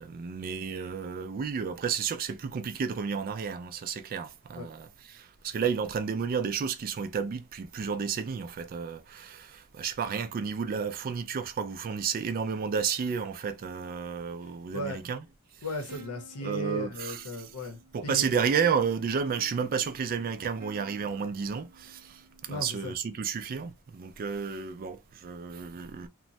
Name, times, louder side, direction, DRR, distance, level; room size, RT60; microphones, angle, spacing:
voice 1, 0.0-15.3 16.4-17.5 17.9-26.1, right 6 dB, 40° right, 0.3 m, -32 dB
voice 2, 15.6-18.4 22.5-22.9, equal, 80° left, 0.9 m, -36 dB
sound 1, 15.9-23.0, right 3 dB, 75° right, 0.8 m, -52 dB
3.0 x 2.1 x 2.6 m
head